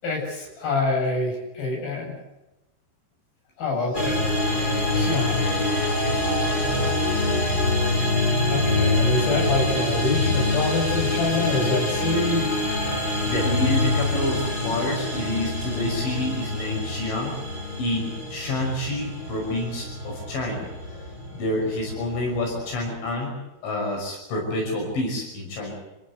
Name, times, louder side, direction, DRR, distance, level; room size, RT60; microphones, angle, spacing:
voice 1, 0.0-2.2 3.6-4.3 4.9-5.5 8.5-12.6, left 2 dB, 50° left, -1 dB, 9.6 m, -26 dB
sound 1, 3.9-23.1, left 2 dB, 20° left, 5.2 m, -25 dB
voice 2, 13.3-17.4 17.8-20.7 21.3-25.7, left 1 dB, 75° left, 0 dB, 8.4 m, -28 dB
28.0 x 16.5 x 8.3 m, 0.99 s
omnidirectional pair, 5.5 m